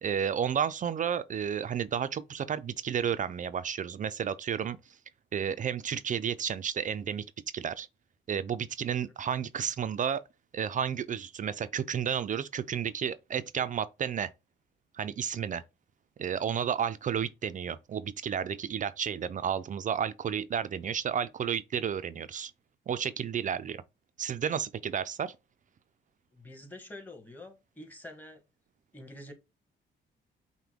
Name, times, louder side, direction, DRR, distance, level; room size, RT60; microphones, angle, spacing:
voice 1, 0.0-4.8 5.3-7.3 7.5-7.9 8.3-10.2 10.5-14.3 14.9-15.6 16.2-22.5 22.9-23.8 24.2-25.3, right 8 dB, 40° right, 0.4 m, -32 dB
voice 2, 26.3-28.4 28.9-29.3, left 1 dB, 10° left, 1.3 m, -47 dB
5.8 x 2.2 x 3.5 m
cardioid pair, 90°, 20 cm